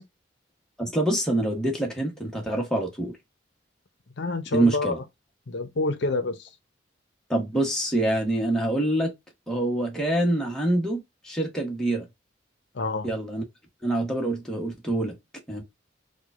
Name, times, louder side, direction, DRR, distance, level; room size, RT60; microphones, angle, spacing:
voice 1, 0.8-3.1 4.5-5.0 7.3-9.1 9.5-12.1 13.0-13.4 13.8-15.2 15.5-15.6, right 1 dB, 5° left, 1.0 m, -25 dB
voice 2, 4.2-5.0 5.5-6.5 12.7-13.1, left 2 dB, 65° left, 0.6 m, -27 dB
4.6 x 2.3 x 2.4 m
head